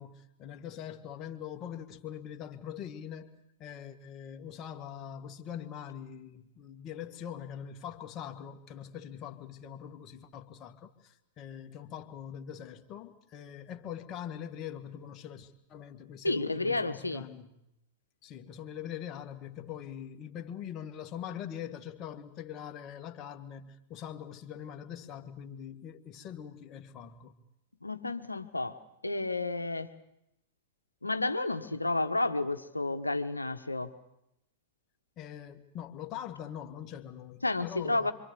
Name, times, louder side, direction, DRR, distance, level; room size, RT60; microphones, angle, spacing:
voice 1, 0.0-3.3 3.6-17.5 18.2-27.3 35.2-38.1, left 9 dB, 35° left, 2.0 m, -43 dB
voice 2, 16.2-17.2 27.8-28.8 29.0-29.9 31.0-33.9 37.4-38.1, left 2 dB, 85° left, 1.3 m, -31 dB
26.5 x 25.0 x 7.0 m
figure-of-eight pair, 95°, 0 cm